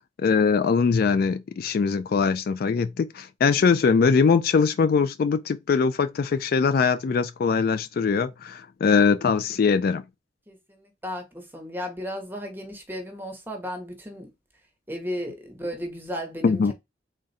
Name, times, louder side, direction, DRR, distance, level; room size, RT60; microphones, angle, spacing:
voice 1, 0.2-10.0 16.4-16.7, left 5 dB, 55° left, 0.3 m, -22 dB
voice 2, 10.5-14.3 14.9-16.7, equal, 10° right, 0.9 m, -35 dB
3.7 x 2.2 x 4.0 m
head